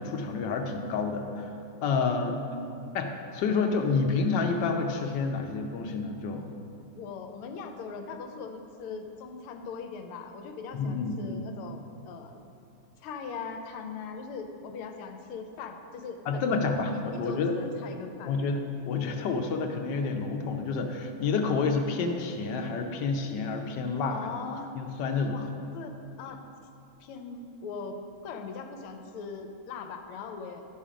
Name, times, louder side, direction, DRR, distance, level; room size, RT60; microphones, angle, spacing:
voice 1, 0.0-1.5 1.8-2.4 2.9-6.5 10.7-11.5 16.3-17.5 18.2-24.4 24.8-25.4, left 4 dB, 65° left, 4 dB, 1.3 m, -29 dB
voice 2, 2.0-3.0 6.9-12.4 13.0-16.4 16.9-18.3 24.1-24.7 25.3-25.9 26.2-26.4 27.0-30.7, left 5 dB, 85° left, 5 dB, 1.6 m, -40 dB
11.5 x 5.6 x 5.0 m, 2.6 s
omnidirectional pair, 2.4 m